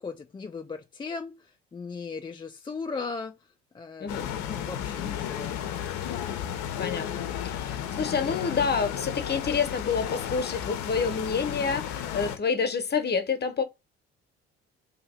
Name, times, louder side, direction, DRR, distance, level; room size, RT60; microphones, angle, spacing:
voice 1, 0.0-5.6, left 4 dB, 15° left, 0.4 m, -38 dB
voice 2, 4.0-4.3 6.8-7.1 7.4-13.6, left 5 dB, 30° left, 0.9 m, -28 dB
sound 1, 4.1-12.4, left 10 dB, 60° left, 0.7 m, -33 dB
2.9 x 2.6 x 4.2 m
hypercardioid pair, 55°, 32 cm